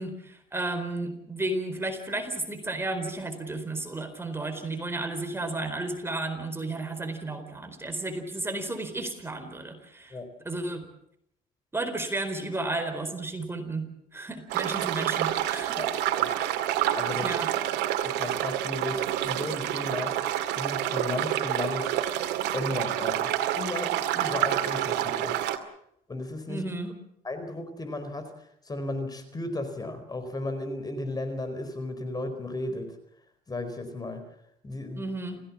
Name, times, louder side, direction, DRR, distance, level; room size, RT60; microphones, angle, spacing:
voice 1, 0.0-10.1 10.4-10.8 11.7-15.8 17.2-17.5 26.5-26.9 35.0-35.4, right 2 dB, 15° right, 6 dB, 4.4 m, -33 dB
sound 1, 14.5-25.6, right 12 dB, 90° right, 2.2 m, -28 dB
voice 2, 15.8-16.3 17.0-17.3 18.0-20.3 20.6-22.0 22.5-25.4 26.1-26.6 27.2-33.0 33.5-34.2 34.6-35.0, left 2 dB, 20° left, 9 dB, 4.5 m, -35 dB
29.5 x 17.0 x 7.4 m, 0.74 s
cardioid pair, 110°, 17 cm